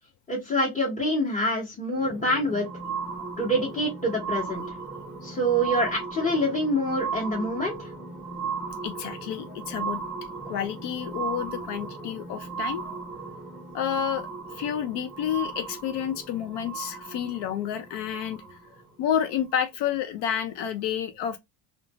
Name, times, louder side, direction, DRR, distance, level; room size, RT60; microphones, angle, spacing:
voice 1, 0.3-2.7 3.4-4.6 5.2-7.9, equal, 15° left, 1.1 m, -26 dB
sound 1, 1.9-18.8 19.5-19.6, right 5 dB, 5° right, 0.6 m, -36 dB
voice 2, 8.8-10.0 10.5-13.0 13.7-18.6 19.0-21.4, left 9 dB, 70° left, 0.5 m, -30 dB
2.5 x 2.2 x 2.9 m
cardioid pair, 135°, 44 cm